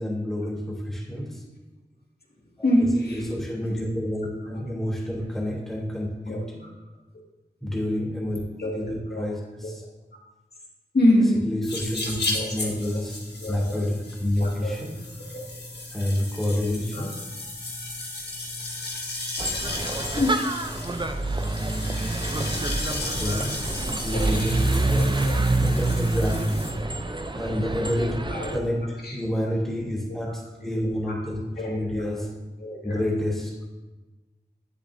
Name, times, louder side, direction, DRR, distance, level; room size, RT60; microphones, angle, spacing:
voice 1, 0.0-1.4 2.6-2.7 3.1-6.4 7.6-8.4 8.7-9.8 11.4-13.2 13.5-14.9 15.9-17.1 21.4-21.5 22.9-23.5 23.9-26.6 27.3-28.1 28.5-31.4 31.6-32.3 32.8-33.5, left 1 dB, ahead, -3 dB, 3.0 m, -29 dB
voice 2, 2.6-3.2 3.6-3.7 4.5-4.6 6.3-6.5 8.6-9.3 10.9-11.4 12.1-13.0 13.4-13.9 14.4-14.7 15.3-15.4 16.9-17.1 20.2-20.3 24.1-24.5 24.9-25.4 28.3-28.6 29.0-29.2 30.3-30.4 31.1-31.2 31.6-32.1 32.6-33.0, left 1 dB, 70° left, -3 dB, 2.1 m, -26 dB
sound 1, 11.6-26.7, left 2 dB, 85° left, 1.6 m, -35 dB
sound 2, 19.4-28.6, right 2 dB, 30° right, 0.6 m, -26 dB
10.0 x 8.0 x 2.7 m, 1.1 s
wide cardioid pair, 45°, 17 cm